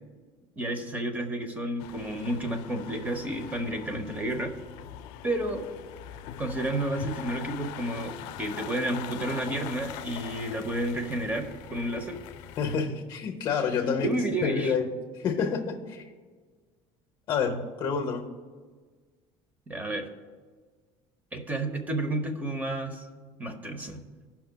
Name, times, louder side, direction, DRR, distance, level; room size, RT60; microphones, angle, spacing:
voice 1, 0.6-4.6 5.2-5.7 6.4-12.2 13.8-14.7 19.7-20.1 21.3-23.1 23.4-24.0, right 1 dB, 15° right, 7 dB, 0.7 m, -31 dB
sound 1, 1.8-12.8, left 11 dB, 85° left, 0.4 m, -42 dB
voice 2, 12.6-14.1 14.4-16.0 17.3-18.3, left 6 dB, 40° left, 2 dB, 0.7 m, -28 dB
16.5 x 5.7 x 2.2 m, 1.5 s
cardioid pair, 155°, 12 cm